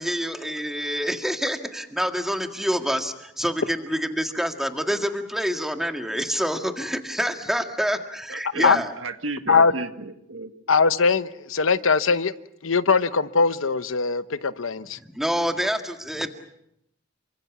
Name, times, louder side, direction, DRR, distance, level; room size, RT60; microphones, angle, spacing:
voice 1, 0.0-8.9 15.0-16.3, equal, ahead, 5 dB, 1.8 m, -27 dB
voice 2, 8.3-10.5, right 3 dB, 80° right, 8 dB, 1.7 m, -33 dB
voice 3, 10.7-12.3 12.6-15.0, left 5 dB, 90° left, 13 dB, 0.9 m, -21 dB
29.0 x 25.0 x 6.1 m, 0.79 s
head